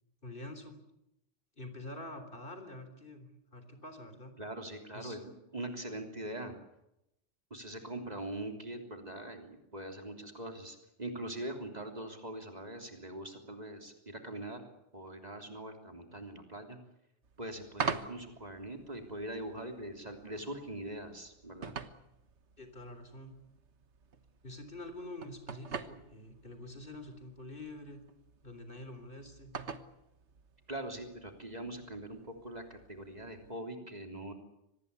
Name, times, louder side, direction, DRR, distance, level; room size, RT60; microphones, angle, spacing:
voice 1, 0.2-0.8 1.6-4.3 4.9-5.2 22.6-23.3 24.4-28.0 28.4-29.5, left 1 dB, 50° left, 9 dB, 3.9 m, -46 dB
voice 2, 4.4-6.6 7.5-14.7 14.9-16.8 17.4-21.7 30.7-34.3, right 1 dB, 35° right, 5 dB, 3.5 m, -42 dB
sound 1, 17.2-33.5, right 5 dB, 75° right, 1.6 m, -46 dB
25.5 x 20.0 x 8.3 m, 0.83 s
omnidirectional pair, 1.2 m